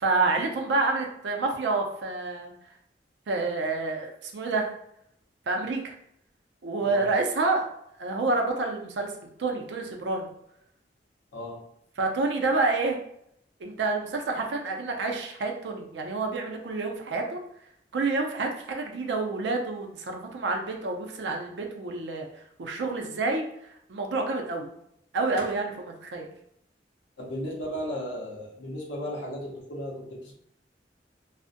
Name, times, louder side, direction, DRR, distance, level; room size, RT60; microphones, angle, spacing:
voice 1, 0.0-2.5 3.3-4.7 5.5-5.9 6.6-7.7 8.0-9.1 9.4-10.3 12.0-13.0 13.6-17.4 17.9-23.4 23.9-24.7 25.1-26.3, right 3 dB, 75° right, 2 dB, 0.4 m, -28 dB
voice 2, 27.2-30.3, equal, 85° left, -1 dB, 0.7 m, -35 dB
2.5 x 2.0 x 2.5 m, 0.73 s
head